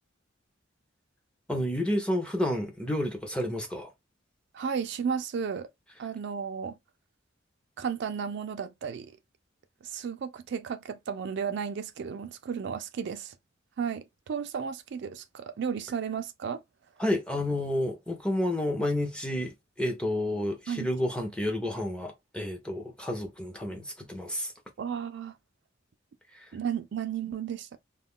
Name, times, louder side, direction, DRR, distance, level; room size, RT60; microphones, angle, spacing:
voice 1, 1.5-3.9 17.0-24.5 26.3-26.5, left 1 dB, 5° left, 0.5 m, -30 dB
voice 2, 4.5-5.7 6.0-6.7 7.8-9.2 9.8-13.3 13.8-16.6 20.7-20.9 24.8-25.3 26.5-27.8, right 7 dB, 60° right, 0.3 m, -33 dB
2.2 x 2.2 x 3.6 m
head